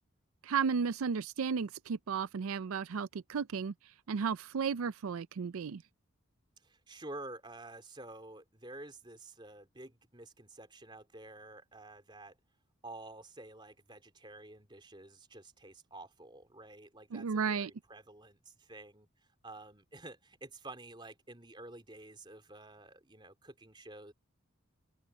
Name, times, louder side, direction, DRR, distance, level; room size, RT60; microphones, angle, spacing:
voice 1, 0.4-3.7 4.1-5.8 17.1-17.7, right 6 dB, 85° right, 0.5 m, -33 dB
voice 2, 6.6-12.4 12.8-19.1 19.4-24.1, right 2 dB, 20° right, 3.5 m, -50 dB
open air
head